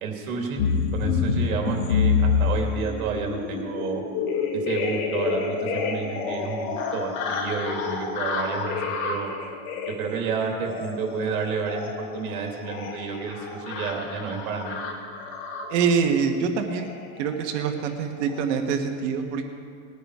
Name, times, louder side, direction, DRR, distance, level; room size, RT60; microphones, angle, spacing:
voice 1, 0.0-0.6 0.9-4.0 4.5-9.3 9.9-14.8, right 5 dB, 75° right, 1 dB, 2.9 m, -30 dB
sound 1, 0.6-16.0 16.7-17.0 17.2-17.5 17.7-17.9 18.2-18.4, left 5 dB, 50° left, 2.0 m, -28 dB
voice 2, 15.7-16.9 17.2-19.5, right 6 dB, 55° right, 5 dB, 1.5 m, -25 dB
19.5 x 10.0 x 4.9 m, 2.3 s
supercardioid pair, 150°, 43 cm